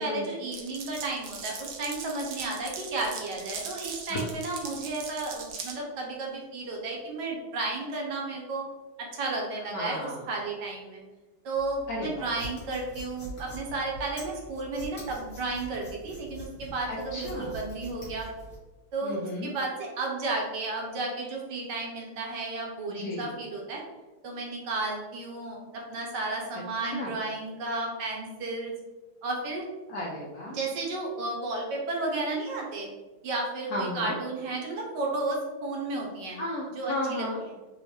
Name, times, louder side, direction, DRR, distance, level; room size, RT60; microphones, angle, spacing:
voice 1, 0.0-8.6 9.0-11.0 11.4-18.3 18.9-23.8 24.2-25.6 25.9-28.7 29.2-29.6 30.5-32.9 33.2-36.4 36.8-37.2, right 2 dB, 70° right, -1 dB, 1.3 m, -33 dB
Glass, 0.5-5.8, right 5 dB, 85° right, 0.7 m, -40 dB
voice 2, 9.5-10.3 11.9-12.3 16.9-17.6 19.0-19.5 22.9-23.3 26.5-27.1 29.9-30.6 33.7-34.2 36.4-37.4, left 1 dB, 75° left, -3 dB, 0.8 m, -34 dB
sound 1, 11.5-18.6, equal, 35° left, 1.6 m, -44 dB
3.4 x 3.0 x 3.2 m, 1.2 s
omnidirectional pair, 2.1 m